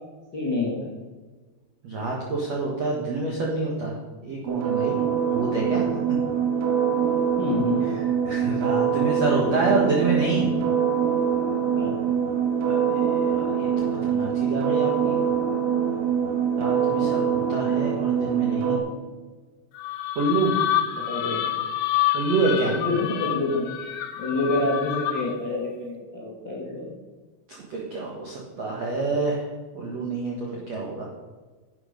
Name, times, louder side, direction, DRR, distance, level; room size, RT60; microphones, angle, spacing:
voice 1, 0.3-0.9 5.3-5.5 7.4-8.0 8.4-8.5 11.7-11.9 20.5-20.6 20.9-21.4 22.6-23.6 24.2-26.9, left 2 dB, 55° left, -5 dB, 1.2 m, -28 dB
voice 2, 1.8-3.9 4.2-5.0 5.3-5.8 8.2-10.5 12.6-13.7 14.0-15.2 16.6-18.8 20.1-20.5 22.1-22.7 27.7-29.4 29.7-30.4 30.7-31.0, right 3 dB, 70° right, -3 dB, 1.6 m, -27 dB
sound 1, 4.5-18.8, right 7 dB, 90° right, 4.1 m, -24 dB
sound 2, 19.8-25.5, left 11 dB, 75° left, 2.4 m, -27 dB
11.0 x 8.8 x 5.2 m, 1.3 s
omnidirectional pair, 5.7 m